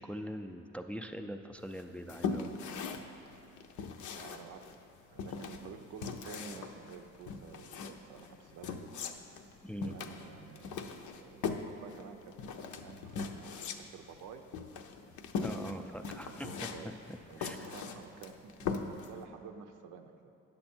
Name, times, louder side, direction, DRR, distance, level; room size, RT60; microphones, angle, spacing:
voice 1, 0.0-2.6 9.6-10.0 15.4-16.5 17.4-17.7, equal, 5° left, 5 dB, 0.3 m, -42 dB
sound 1, 1.7-19.2, left 5 dB, 75° left, 0.6 m, -40 dB
voice 2, 4.1-4.7 5.1-8.9 9.8-14.4 16.4-16.9 17.3-17.4 17.7-20.3, right 6 dB, 85° right, 7 dB, 0.6 m, -51 dB
9.4 x 6.7 x 4.4 m, 2.7 s
cardioid pair, 90°, 30 cm